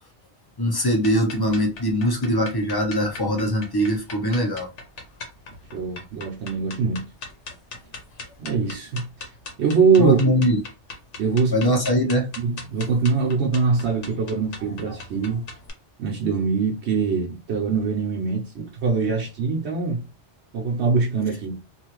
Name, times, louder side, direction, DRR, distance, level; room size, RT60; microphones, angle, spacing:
voice 1, 0.6-4.7 10.0-10.6 11.5-12.3, equal, 25° left, 0.5 m, -22 dB
sound 1, 1.0-15.7, left 3 dB, 75° left, 1.1 m, -40 dB
voice 2, 5.7-7.1 8.4-9.3 9.6-10.2 11.2-11.6 12.4-15.5 16.0-20.1 20.5-21.6, right 5 dB, 70° right, 0.9 m, -23 dB
2.8 x 2.4 x 2.9 m
omnidirectional pair, 1.2 m